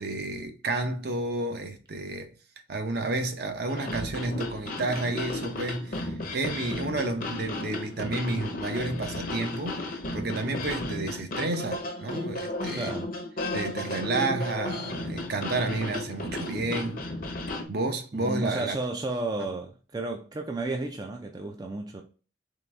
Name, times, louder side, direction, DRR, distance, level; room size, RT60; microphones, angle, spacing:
voice 1, 0.0-2.3 2.7-12.9 13.5-17.0 17.7-18.7, right 2 dB, 55° right, 0.6 m, -31 dB
sound 1, 3.7-17.7, left 2 dB, 45° left, 0.7 m, -34 dB
voice 2, 12.7-13.1 18.1-22.0, right 2 dB, 20° right, 0.4 m, -33 dB
3.8 x 3.3 x 3.2 m
head